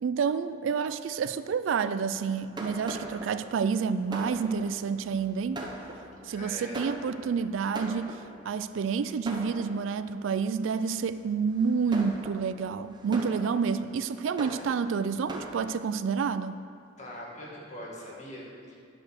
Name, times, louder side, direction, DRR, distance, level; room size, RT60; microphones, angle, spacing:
voice 1, 0.0-5.6 6.2-8.2 8.5-16.6, right 6 dB, 85° right, 12 dB, 0.3 m, -29 dB
Fireworks, 2.2-8.6 9.3-10.2 10.7-11.0 11.6-15.7, right 1 dB, 25° right, 0.8 m, -41 dB
voice 2, 6.3-6.8 17.0-18.8, equal, 40° left, -4 dB, 1.9 m, -42 dB
10.0 x 5.2 x 6.5 m, 2.4 s
head